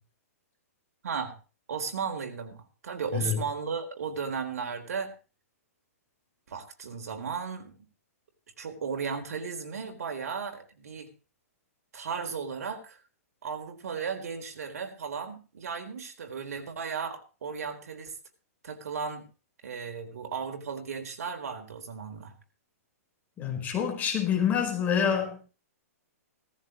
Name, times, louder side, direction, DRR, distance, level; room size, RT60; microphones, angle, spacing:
voice 1, 1.0-1.3 1.7-5.1 6.5-7.7 8.6-11.1 11.9-13.0 13.4-18.1 18.6-19.3 19.6-22.3, right 6 dB, 75° right, 5 dB, 4.0 m, -35 dB
voice 2, 23.4-25.5, left 8 dB, 20° left, 2 dB, 4.6 m, -27 dB
17.0 x 14.5 x 3.1 m, 0.33 s
hypercardioid pair, 150°, 8 cm